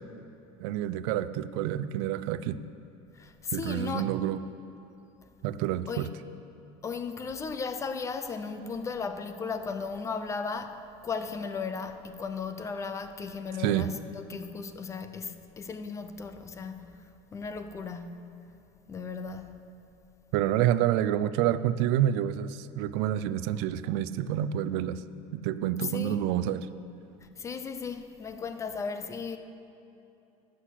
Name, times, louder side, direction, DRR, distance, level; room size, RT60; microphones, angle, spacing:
voice 1, 0.6-2.6 3.5-4.4 5.4-6.1 13.6-13.9 20.3-25.0 25.4-26.7, right 11 dB, 70° right, 0.5 m, -28 dB
voice 2, 3.1-4.1 5.9-6.1 6.8-17.0 17.3-18.3 18.9-19.5 25.8-26.3 27.4-29.4, left 5 dB, 20° left, 0.5 m, -36 dB
11.5 x 6.5 x 8.2 m
cardioid pair, 150°, 14 cm